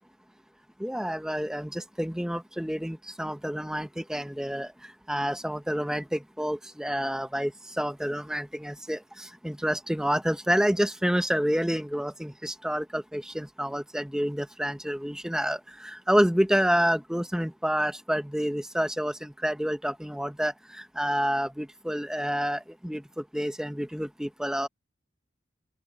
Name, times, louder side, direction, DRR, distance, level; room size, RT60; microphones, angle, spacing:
voice 1, 0.8-24.7, equal, 5° right, 1.1 m, -29 dB
open air
head